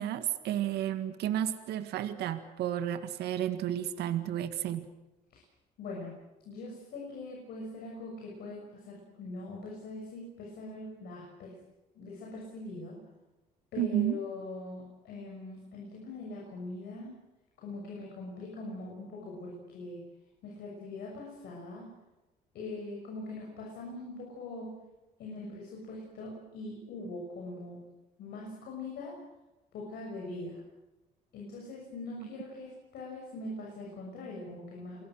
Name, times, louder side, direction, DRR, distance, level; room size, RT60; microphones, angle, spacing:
voice 1, 0.0-4.9 13.8-14.2, right 11 dB, 75° right, 10 dB, 1.8 m, -32 dB
voice 2, 5.8-6.1 6.4-11.6 11.9-13.0 13.7-17.2 17.6-20.0 20.4-21.9 22.5-24.8 25.2-27.8 28.2-29.2 29.7-30.6 31.3-35.0, left 2 dB, 70° left, -2 dB, 6.8 m, -42 dB
29.0 x 22.0 x 6.5 m, 0.99 s
cardioid pair, 110°, 17 cm